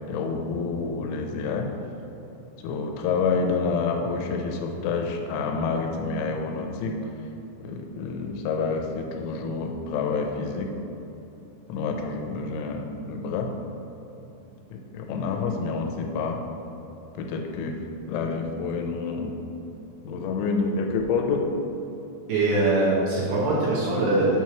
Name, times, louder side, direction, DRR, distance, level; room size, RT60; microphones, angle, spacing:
voice 1, 0.1-1.7 2.6-7.0 7.6-10.7 11.7-13.5 14.7-16.4 17.2-17.8 18.1-19.4 20.0-21.5, left 4 dB, 85° left, 2 dB, 3.1 m, -28 dB
voice 2, 22.3-24.4, right 2 dB, 80° right, -6 dB, 2.1 m, -22 dB
8.9 x 3.1 x 5.7 m, 3.0 s
omnidirectional pair, 5.4 m